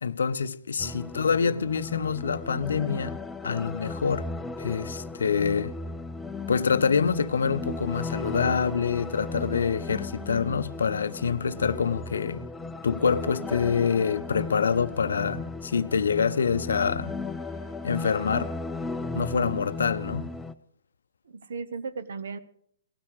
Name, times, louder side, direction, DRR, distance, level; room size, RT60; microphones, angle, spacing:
voice 1, 0.0-3.2 3.4-4.3 4.6-5.7 6.5-12.5 12.8-17.2 17.8-18.5 19.1-20.3, left 6 dB, 75° left, 0.6 m, -26 dB
sound 1, 0.8-20.5, left 3 dB, 10° left, 0.6 m, -36 dB
voice 2, 1.4-1.7 21.3-22.4, right 5 dB, 70° right, 1.0 m, -36 dB
18.5 x 12.5 x 4.8 m
hypercardioid pair, 125°, 0 cm